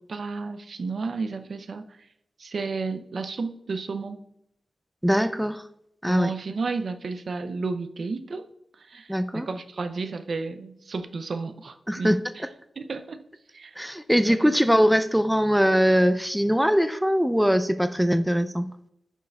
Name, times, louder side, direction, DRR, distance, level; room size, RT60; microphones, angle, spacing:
voice 1, 0.0-1.8 2.4-4.2 6.1-8.5 8.8-12.4 12.8-13.2 13.5-13.8 14.3-14.5, right 4 dB, 65° right, 9 dB, 0.5 m, -32 dB
voice 2, 5.0-5.6 6.0-6.3 9.1-9.5 11.9-12.2 13.8-18.7, equal, 5° right, 11 dB, 0.4 m, -21 dB
11.0 x 4.7 x 2.3 m, 0.77 s
cardioid pair, 55°, 0 cm